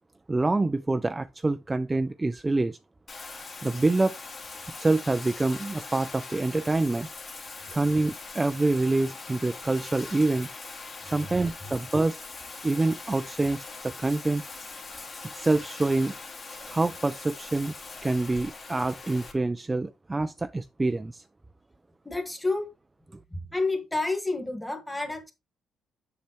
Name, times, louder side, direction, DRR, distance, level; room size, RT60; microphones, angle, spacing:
voice 1, 0.3-2.8 3.6-4.2 4.8-7.1 7.7-10.5 11.0-12.2 12.6-14.4 15.3-16.1 16.7-17.7 18.0-21.2 23.1-23.2, right 2 dB, 20° right, 0.3 m, -26 dB
Bathtub (filling or washing), 3.1-19.3, left 3 dB, 40° left, 1.9 m, -42 dB
voice 2, 22.1-22.7 23.3-25.3, left 2 dB, 10° left, 1.6 m, -29 dB
7.3 x 5.7 x 3.0 m
cardioid pair, 90°, 0 cm